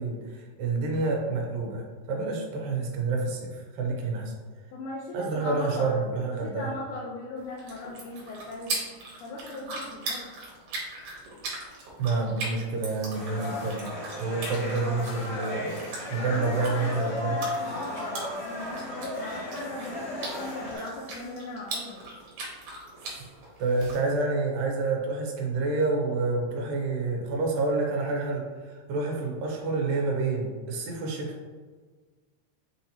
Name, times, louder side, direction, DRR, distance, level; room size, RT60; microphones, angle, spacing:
voice 1, 0.0-4.3 5.1-6.7 12.0-13.9 14.2-15.8 16.1-17.4 23.6-31.4, right 3 dB, 85° right, 0 dB, 2.3 m, -28 dB
voice 2, 4.7-6.0 6.3-8.8 9.2-10.3 16.2-22.1, left 2 dB, 85° left, -2 dB, 1.7 m, -38 dB
sound 1, 7.4-24.0, right 2 dB, 70° right, 2.3 m, -40 dB
sound 2, 13.1-20.8, left 1 dB, 55° left, 1.8 m, -35 dB
6.1 x 2.8 x 2.8 m, 1.4 s
omnidirectional pair, 4.0 m